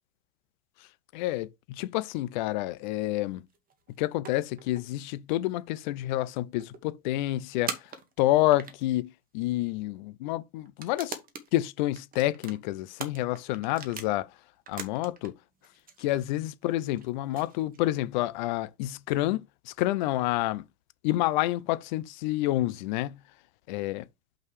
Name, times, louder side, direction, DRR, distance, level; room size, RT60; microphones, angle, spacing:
voice 1, 1.1-3.4 4.0-7.7 8.2-11.2 11.5-14.3 14.7-15.4 16.0-20.6 21.0-23.2 23.7-24.0, left 16 dB, 35° left, 0.4 m, -28 dB
sound 1, 3.5-5.1 5.5-5.6 5.8-5.9 6.6-6.8 7.7-9.0 9.7-9.8 10.7-11.5 11.9-14.1 14.6-15.3 15.6-18.1, right 6 dB, 20° right, 1.2 m, -41 dB
5.7 x 4.8 x 4.7 m
hypercardioid pair, 115°, 46 cm